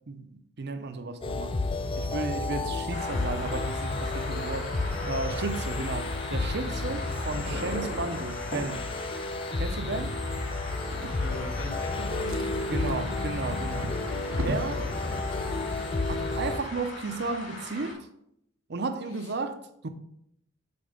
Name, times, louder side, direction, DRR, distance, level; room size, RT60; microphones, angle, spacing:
voice 1, 0.1-1.5 2.0-4.8 5.1-8.9 9.6-10.2 12.7-13.9 14.4-14.8 16.1-18.1 18.7-19.9, right 3 dB, 55° right, 0.7 m, -34 dB
sound 1, 1.2-16.6, left 2 dB, 25° left, 0.4 m, -31 dB
sound 2, 2.9-17.9, left 2 dB, 60° left, 3.0 m, -39 dB
Drawer open or close, 10.8-11.8 12.1-14.8 15.6-15.8 16.2-16.3, right 2 dB, 80° right, 0.8 m, -40 dB
voice 2, 11.2-13.2 19.1-19.3, left 2 dB, 80° left, 1.5 m, -41 dB
6.9 x 4.4 x 5.0 m
head